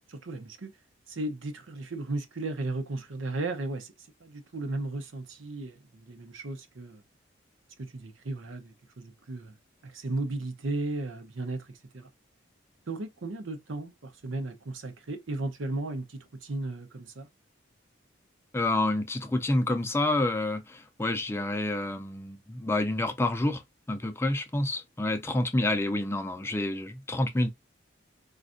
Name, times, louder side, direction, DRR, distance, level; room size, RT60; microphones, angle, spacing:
voice 1, 0.1-0.7 1.1-3.9 4.2-7.0 7.8-9.5 9.8-12.1 12.9-17.3, right 2 dB, 85° right, 0.7 m, -35 dB
voice 2, 18.5-23.6 23.9-27.5, left 2 dB, 15° left, 0.4 m, -28 dB
4.2 x 2.4 x 2.5 m
head